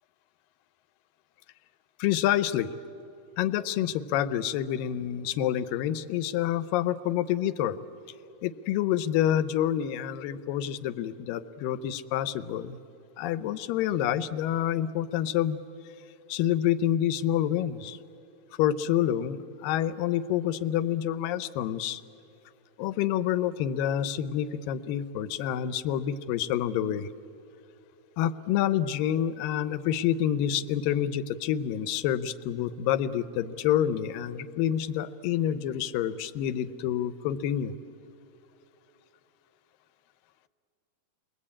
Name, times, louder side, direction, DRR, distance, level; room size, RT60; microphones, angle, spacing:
voice 1, 2.0-2.7 3.4-7.8 8.4-12.8 13.2-15.6 16.3-18.0 18.6-22.0 22.8-27.1 28.2-37.7, left 11 dB, 80° left, 14 dB, 2.4 m, -28 dB
30.0 x 22.0 x 8.7 m, 2.8 s
omnidirectional pair, 4.1 m